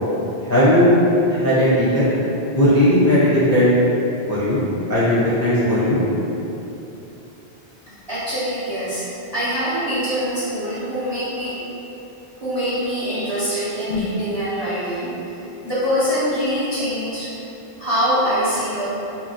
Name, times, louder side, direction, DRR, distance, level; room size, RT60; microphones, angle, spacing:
voice 1, 0.4-0.9 1.3-2.1 2.5-3.7 4.3-6.0, left 1 dB, 20° left, -11 dB, 0.5 m, -17 dB
voice 2, 8.1-11.6 12.4-15.4 15.6-17.3 17.8-18.9, equal, 30° right, -11 dB, 0.6 m, -24 dB
2.8 x 2.7 x 2.7 m, 3.0 s
omnidirectional pair, 1.1 m